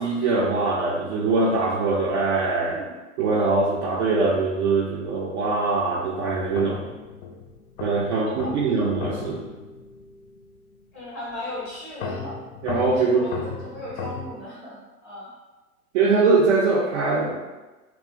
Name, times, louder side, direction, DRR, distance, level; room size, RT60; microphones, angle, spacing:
voice 1, 0.0-6.9 7.8-9.5 12.6-13.3 15.9-17.4, right 3 dB, 50° right, -3 dB, 0.5 m, -22 dB
sound 1, 5.2-5.5 6.5-10.6 12.0-14.4, left 5 dB, 65° left, 0.5 m, -36 dB
voice 2, 10.9-12.4 12.9-14.8 15.0-15.3, left 1 dB, ahead, -6 dB, 0.5 m, -36 dB
2.5 x 2.1 x 2.7 m, 1.2 s
hypercardioid pair, 115°, 45 cm